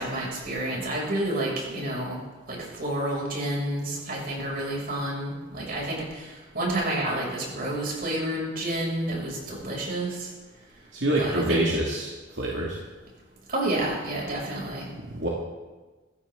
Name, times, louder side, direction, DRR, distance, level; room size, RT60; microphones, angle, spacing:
voice 1, 0.0-2.2 2.5-10.3 11.2-11.7 13.5-14.9, right 1 dB, 55° right, -3 dB, 6.6 m, -29 dB
voice 2, 10.9-12.8 15.1-15.3, right 1 dB, 80° right, -3 dB, 2.3 m, -26 dB
21.5 x 15.5 x 3.8 m, 1.3 s
head